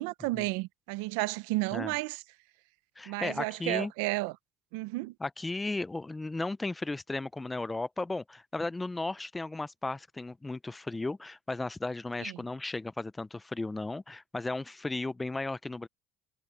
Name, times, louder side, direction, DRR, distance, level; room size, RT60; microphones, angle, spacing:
voice 1, 0.0-2.2 3.1-4.3 4.7-5.1 12.2-12.3, right 21 dB, 90° right, 0.8 m, -32 dB
voice 2, 3.0-3.9 5.2-15.9, left 2 dB, 10° left, 0.5 m, -35 dB
cardioid pair, 130°, 0 cm